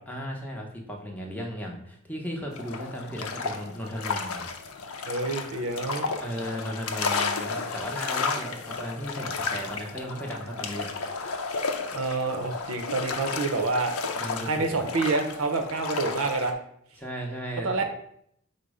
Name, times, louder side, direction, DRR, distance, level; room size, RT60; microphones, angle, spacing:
voice 1, 0.1-4.5 6.2-10.9 14.2-14.8 17.0-17.8, equal, 5° left, 0 dB, 0.7 m, -35 dB
sound 1, 2.5-16.5, left 4 dB, 90° left, 0.5 m, -33 dB
voice 2, 5.0-6.1 11.9-13.9 14.4-16.6 17.6-17.8, right 3 dB, 80° right, 5 dB, 0.6 m, -27 dB
5.3 x 2.1 x 4.7 m, 0.70 s
head